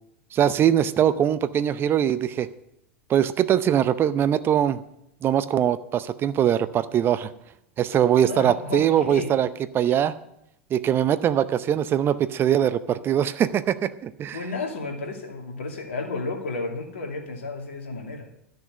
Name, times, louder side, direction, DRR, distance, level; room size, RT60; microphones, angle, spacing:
voice 1, 0.3-2.5 3.1-4.8 5.2-7.3 7.8-9.5 9.7-10.1 10.7-14.4, right 10 dB, 35° right, 14 dB, 0.7 m, -22 dB
voice 2, 8.3-9.3 14.3-18.3, left 3 dB, 70° left, 3 dB, 2.4 m, -32 dB
13.0 x 6.6 x 8.6 m, 0.80 s
figure-of-eight pair, 85°, 7 cm